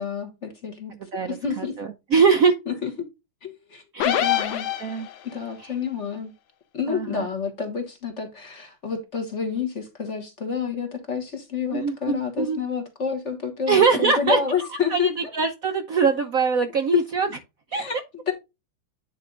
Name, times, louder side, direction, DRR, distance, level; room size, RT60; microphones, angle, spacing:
voice 1, 0.0-0.9 1.3-1.7 2.7-2.9 3.4-4.7 5.3-6.3 6.7-15.1 16.9-17.0 17.7-18.3, left 6 dB, 40° left, 1.4 m, -29 dB
voice 2, 1.1-2.6 3.9-4.3 4.8-5.1 6.9-7.3 11.7-12.6 13.7-14.4 14.9-17.3 17.7-17.8, right 5 dB, 60° right, 0.9 m, -22 dB
sound 1, 4.0-5.4, left 11 dB, 75° left, 1.6 m, -25 dB
9.1 x 4.3 x 3.8 m
omnidirectional pair, 2.2 m